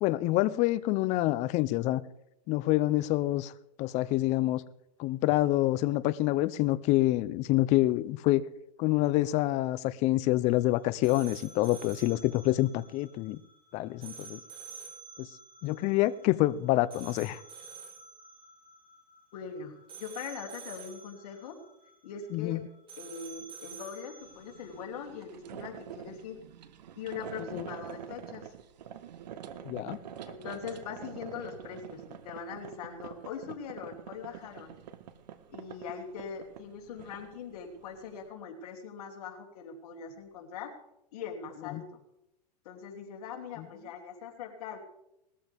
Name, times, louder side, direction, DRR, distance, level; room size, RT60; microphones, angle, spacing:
voice 1, 0.0-2.0 2.5-3.5 3.8-4.6 5.0-8.4 8.8-13.4 13.7-14.4 15.2-15.3 15.6-17.4 22.3-22.7 27.4-27.7 29.6-30.0 41.7-41.8 43.6-43.7, left 17 dB, 35° left, 0.6 m, -27 dB
sound 1, 10.5-24.8, right 5 dB, 25° right, 2.9 m, -50 dB
voice 2, 19.3-21.6 22.0-22.6 23.0-26.4 26.9-28.5 30.3-34.7 35.5-40.7 41.1-42.0 42.6-44.8, left 6 dB, 65° left, 2.9 m, -41 dB
sound 2, 24.2-38.3, right 9 dB, 80° right, 1.2 m, -46 dB
19.5 x 14.0 x 3.5 m
supercardioid pair, 140°, 21 cm